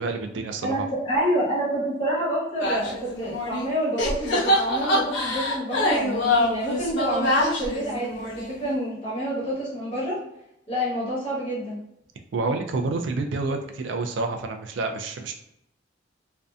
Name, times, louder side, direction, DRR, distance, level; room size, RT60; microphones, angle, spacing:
voice 1, 0.0-0.9 12.3-15.3, right 3 dB, 70° right, 5 dB, 0.4 m, -28 dB
voice 2, 0.6-10.2 10.7-11.8, equal, 30° left, -8 dB, 1.1 m, -28 dB
sound 1, 2.6-3.7 4.0-8.7, left 1 dB, 65° left, 0.6 m, -25 dB
2.6 x 2.2 x 2.4 m, 0.81 s
head